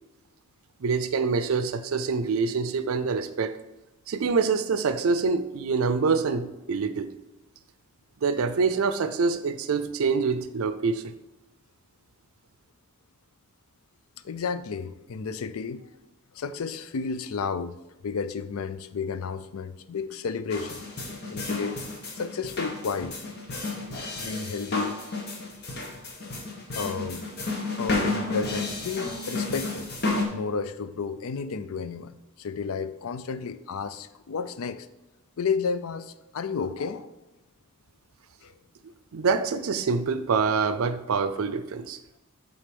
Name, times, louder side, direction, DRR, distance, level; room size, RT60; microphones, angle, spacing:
voice 1, 0.8-3.6 4.1-7.1 8.2-11.1 39.1-42.0, right 5 dB, 75° right, 12 dB, 0.5 m, -25 dB
voice 2, 14.2-15.9 16.3-17.8 18.0-20.8 21.3-21.8 22.2-23.2 24.2-25.0 26.7-27.3 27.8-29.9 30.3-32.1 32.4-34.9 35.4-37.1 38.4-38.5, left 5 dB, 75° left, 13 dB, 0.4 m, -32 dB
sound 1, 20.5-30.3, left 2 dB, 50° left, 1.2 m, -32 dB
7.5 x 3.9 x 5.2 m, 1.0 s
head